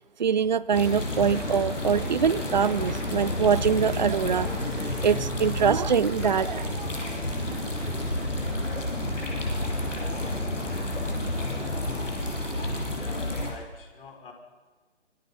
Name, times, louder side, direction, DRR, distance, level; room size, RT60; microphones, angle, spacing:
voice 1, 0.2-6.8 7.5-7.9, right 7 dB, 40° right, 19 dB, 0.7 m, -24 dB
sound 1, 0.7-13.5, left 1 dB, 85° left, 7.6 m, -30 dB
voice 2, 12.9-14.3, left 4 dB, 45° left, 2 dB, 5.7 m, -45 dB
25.5 x 22.5 x 5.7 m, 1.3 s
figure-of-eight pair, 145°, 37 cm